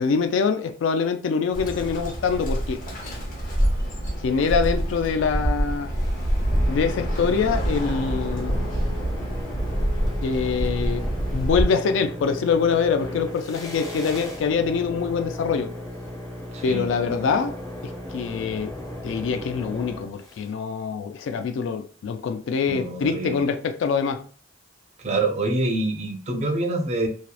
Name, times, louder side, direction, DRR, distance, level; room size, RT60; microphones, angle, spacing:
voice 1, 0.0-2.8 4.2-6.0 6.7-8.6 10.2-11.0 11.3-15.7 16.6-17.6 18.1-18.7 19.0-24.2, left 5 dB, 70° left, 0.3 m, -24 dB
Bird, 1.5-11.6, equal, 45° left, 0.8 m, -26 dB
sound 1, 5.9-20.5, left 1 dB, 20° left, 0.6 m, -36 dB
voice 2, 16.5-16.9 22.7-23.4 25.0-27.1, right 2 dB, 35° right, 0.4 m, -26 dB
2.8 x 2.0 x 2.2 m
head